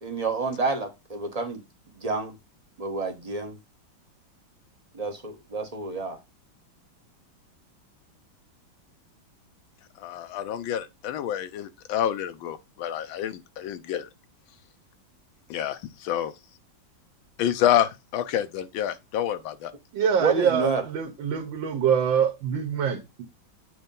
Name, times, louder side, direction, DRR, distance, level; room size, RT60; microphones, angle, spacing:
voice 1, 0.0-1.6 2.0-2.3 2.8-3.6 4.9-6.2 20.2-20.8, right 4 dB, 40° right, 0.5 m, -29 dB
voice 2, 10.0-14.1 15.5-16.3 17.4-19.7, left 11 dB, 80° left, 1.4 m, -28 dB
voice 3, 19.9-23.2, right 7 dB, 75° right, 1.7 m, -25 dB
7.8 x 2.7 x 5.2 m
omnidirectional pair, 2.1 m